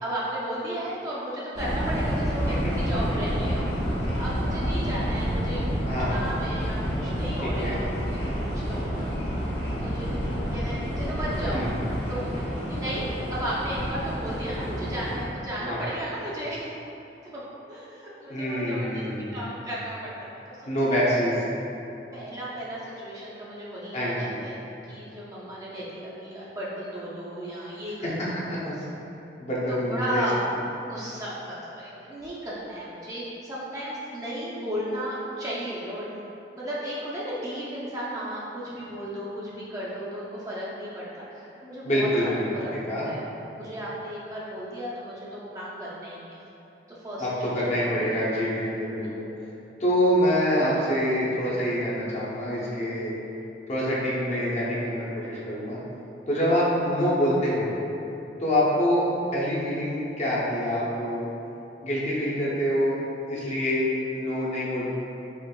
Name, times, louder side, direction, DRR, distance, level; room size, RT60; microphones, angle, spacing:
voice 1, 0.0-5.6 6.1-8.8 9.7-16.7 17.3-17.4 17.7-19.0 19.3-20.0 20.5-20.6 22.1-24.6 24.9-28.3 28.7-28.8 29.7-30.4 30.9-36.2 36.6-42.7 43.0-43.2 43.6-46.5 47.0-48.1, equal, 20° right, -8 dB, 0.5 m, -34 dB
sound 1, 1.5-15.2, equal, 70° left, 1.0 m, -29 dB
voice 2, 5.9-6.2 7.4-7.7 11.4-11.7 15.6-15.8 18.3-19.4 20.7-21.4 23.9-24.3 28.0-28.1 28.5-28.7 29.4-30.2 41.8-42.4 42.7-43.1 47.2-49.3 49.8-53.1 53.7-55.8 56.3-57.7 58.4-61.3 61.8-63.0 63.3-63.9 64.1-64.9, equal, 40° left, -7 dB, 0.7 m, -26 dB
4.5 x 3.0 x 2.3 m, 2.9 s
head